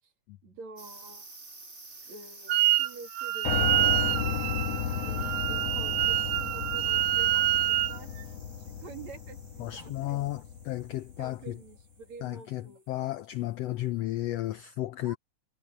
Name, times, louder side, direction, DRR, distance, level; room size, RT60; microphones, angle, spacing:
voice 1, 0.4-1.3 2.1-4.1 5.0-8.1 8.4-10.3 11.2-12.9 15.0-15.2, right 4 dB, 60° right, 3.8 m, -48 dB
sound 1, 0.8-13.1, right 3 dB, 20° right, 1.8 m, -51 dB
Wind instrument woodwind instrument, 2.5-2.9 3.2-8.0, right 14 dB, 85° right, 2.1 m, -27 dB
Piano, 3.4-11.5, left 8 dB, 65° left, 2.1 m, -34 dB
voice 2, 9.6-11.6 12.2-15.2, left 15 dB, 85° left, 1.4 m, -33 dB
omnidirectional pair, 3.7 m